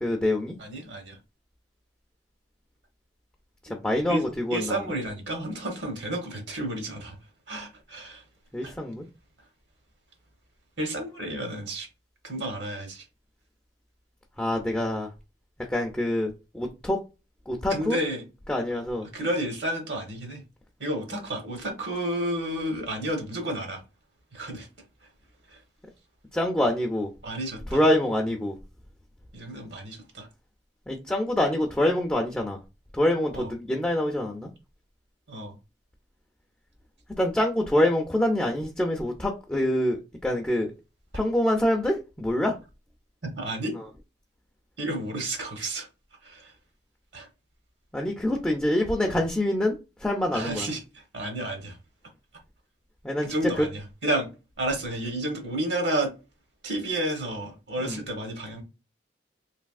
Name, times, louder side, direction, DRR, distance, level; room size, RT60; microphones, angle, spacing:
voice 1, 0.0-0.6 3.7-4.7 8.5-9.0 14.4-15.1 15.7-17.0 17.5-18.0 18.5-19.1 26.3-27.1 27.7-28.5 30.9-32.6 32.9-34.5 37.2-40.7 41.1-42.5 47.9-49.8 50.0-50.7 53.0-53.3 53.6-53.7 57.8-58.0, left 1 dB, 5° left, 0.4 m, -25 dB
voice 2, 0.6-1.2 4.1-4.2 4.5-7.2 7.5-8.2 8.6-8.7 10.8-11.9 12.2-13.0 17.7-18.2 18.7-18.8 19.1-20.4 20.8-23.8 24.3-24.7 25.5-25.6 27.2-27.8 29.3-30.3 33.3-33.5 35.3-35.5 43.2-43.8 44.8-45.9 46.2-46.5 47.1-47.3 49.1-49.2 50.3-50.8 51.1-51.8 53.2-54.3 54.6-56.1 56.6-58.6, right 1 dB, 70° right, 1.0 m, -31 dB
3.3 x 2.6 x 2.3 m
head